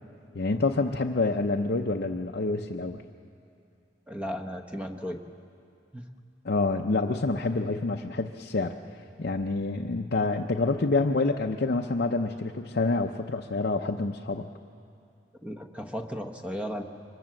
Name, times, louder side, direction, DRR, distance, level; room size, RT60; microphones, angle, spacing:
voice 1, 0.3-3.0 6.4-14.5, left 3 dB, 60° left, 2 dB, 0.7 m, -27 dB
voice 2, 4.1-5.2 5.9-6.0 15.4-16.8, equal, 5° right, 5 dB, 1.1 m, -35 dB
24.5 x 20.5 x 7.7 m, 2.5 s
head